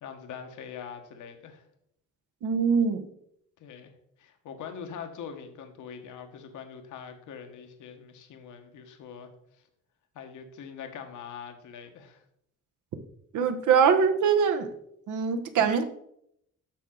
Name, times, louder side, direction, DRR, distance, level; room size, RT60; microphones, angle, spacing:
voice 1, 0.0-1.6 3.6-3.9 4.2-9.3 10.1-12.2, left 7 dB, 80° left, 6 dB, 1.2 m, -43 dB
voice 2, 2.4-3.1 13.3-14.7 15.1-15.8, right 6 dB, 75° right, 6 dB, 1.1 m, -23 dB
8.9 x 6.3 x 3.8 m, 0.73 s
cardioid pair, 90°, 30 cm